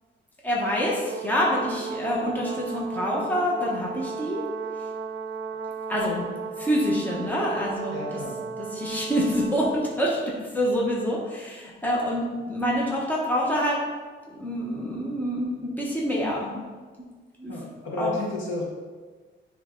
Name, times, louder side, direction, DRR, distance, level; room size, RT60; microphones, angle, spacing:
voice 1, 0.4-4.4 5.9-6.3 6.6-8.2 8.7-10.2 10.5-13.8 14.3-16.6 17.4-17.5 18.0-18.1, equal, 10° left, -4 dB, 1.2 m, -26 dB
Brass instrument, 1.1-10.0, right 5 dB, 60° right, 0.6 m, -35 dB
voice 2, 7.9-8.5 17.5-18.6, left 3 dB, 70° left, -3 dB, 1.7 m, -32 dB
9.7 x 3.4 x 3.9 m, 1.4 s
wide cardioid pair, 155°, 20 cm